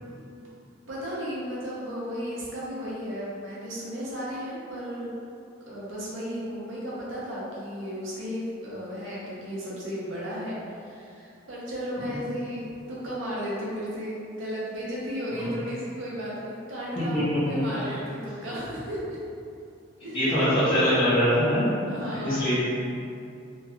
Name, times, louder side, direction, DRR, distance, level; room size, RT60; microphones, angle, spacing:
voice 1, 0.1-0.4 0.9-5.1 5.7-17.2 17.5-19.2 20.0-20.2 21.9-22.5, equal, 80° right, -7 dB, 0.8 m, -34 dB
voice 2, 17.0-17.9 20.1-21.7 22.1-22.6, equal, 30° left, -16 dB, 0.8 m, -24 dB
2.9 x 2.6 x 2.3 m, 2.5 s
head